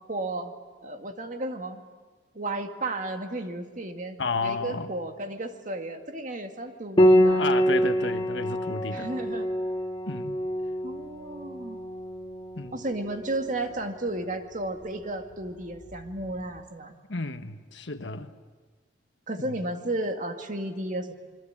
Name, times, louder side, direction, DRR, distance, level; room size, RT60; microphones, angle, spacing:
voice 1, 0.1-0.5 0.8-1.8 2.3-7.4 8.9-9.5 10.8-11.8 12.7-17.0 19.3-21.1, right 2 dB, 45° right, 2.1 m, -33 dB
voice 2, 4.2-4.9 7.4-9.1 10.0-10.4 12.6-12.8 17.1-18.3 19.4-19.6, left 3 dB, 75° left, 1.4 m, -32 dB
Piano, 7.0-16.3, equal, 25° left, 2.4 m, -27 dB
27.0 x 22.5 x 8.9 m
head